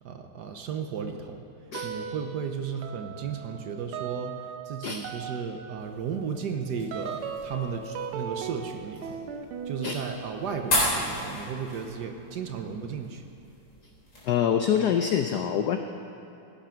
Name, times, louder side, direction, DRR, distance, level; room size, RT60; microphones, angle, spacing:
voice 1, 0.0-1.5 1.8-9.2 9.6-13.2, right 6 dB, 65° right, 5 dB, 1.1 m, -34 dB
sound 1, 1.7-2.5 2.8-13.2, right 7 dB, 80° right, 1.6 m, -40 dB
sound 2, 5.8-14.2, left 1 dB, 55° left, 4.7 m, -35 dB
voice 2, 14.2-15.8, left 8 dB, 80° left, 6 dB, 0.9 m, -25 dB
16.0 x 8.5 x 5.8 m, 2.8 s
omnidirectional pair, 2.4 m